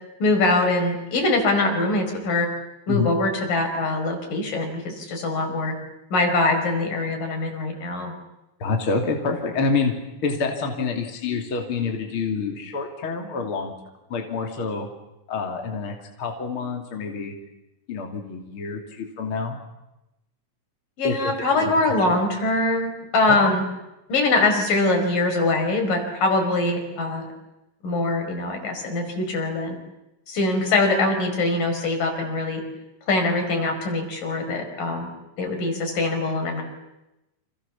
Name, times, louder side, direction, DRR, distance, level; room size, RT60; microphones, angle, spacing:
voice 1, 0.2-2.5 2.9-5.8 6.1-8.1 21.0-23.6 24.1-27.3 27.8-29.8 30.3-32.6 33.1-35.1 35.4-36.6, left 2 dB, 70° left, 4 dB, 6.7 m, -23 dB
voice 2, 8.6-9.9 10.2-13.7 14.1-14.9 15.3-17.3 17.9-19.6 21.0-21.3 21.6-21.7 22.0-22.1 23.3-23.6, left 4 dB, 40° left, 3 dB, 3.4 m, -27 dB
29.5 x 28.0 x 7.2 m, 0.93 s
omnidirectional pair, 4.0 m